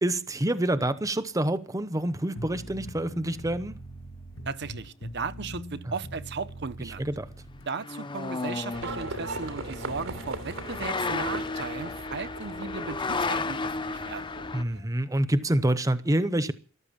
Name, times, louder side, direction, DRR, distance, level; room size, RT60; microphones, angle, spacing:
voice 1, 0.0-3.7 6.8-7.3 14.5-16.5, right 1 dB, 15° right, 0.8 m, -27 dB
sound 1, 2.3-7.7, equal, 75° left, 2.2 m, -42 dB
sound 2, 3.6-3.7 7.6-14.6, left 3 dB, 25° left, 0.7 m, -33 dB
voice 2, 4.5-7.1 7.7-14.3, right 4 dB, 60° right, 0.9 m, -36 dB
Livestock farm animals working animals, 8.7-14.8, right 2 dB, 85° right, 3.3 m, -39 dB
14.0 x 12.5 x 7.3 m
head